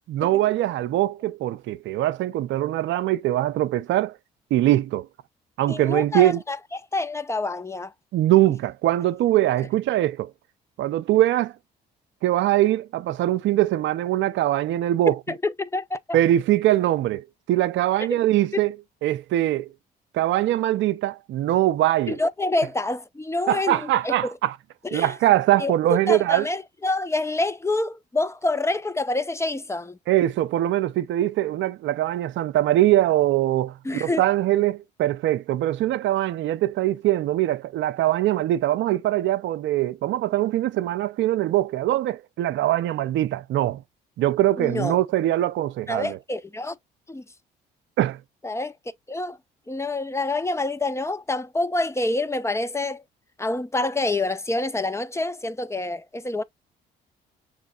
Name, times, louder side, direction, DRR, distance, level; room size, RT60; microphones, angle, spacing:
voice 1, 0.1-4.1 4.5-5.1 5.6-6.4 8.1-10.3 10.8-11.5 12.2-15.1 16.1-18.7 19.0-19.7 20.1-22.2 23.5-24.5 24.9-26.4 30.1-33.7 34.0-43.8 44.2-46.2 48.0-48.2, right 14 dB, 65° right, 0.5 m, -22 dB
voice 2, 5.7-7.9 15.1-16.2 18.1-18.2 18.5-18.6 22.1-24.3 24.8-25.1 25.6-30.0 33.8-34.2 44.6-45.0 45.9-46.8 47.1-47.2 48.4-48.7 49.1-49.4 49.7-53.0 53.4-56.4, left 2 dB, 15° left, 0.5 m, -27 dB
6.3 x 3.0 x 2.3 m
hypercardioid pair, 55°, 21 cm